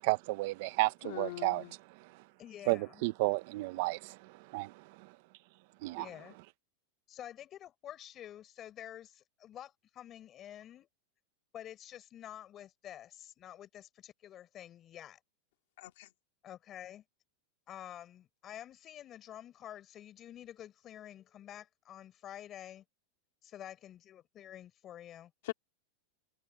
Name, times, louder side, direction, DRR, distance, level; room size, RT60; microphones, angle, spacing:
voice 1, 0.0-1.6 2.7-4.2 4.5-4.7 5.8-6.1, right 22 dB, 55° right, 0.9 m, -32 dB
voice 2, 1.0-1.7 15.8-16.1 25.4-25.5, left 18 dB, 65° left, 2.3 m, -41 dB
voice 3, 2.4-3.0 5.9-6.4 7.1-10.9 11.5-15.2 16.4-17.0 17.7-22.8 23.4-25.3, left 11 dB, 30° left, 5.3 m, -49 dB
supercardioid pair, 140°, 0 cm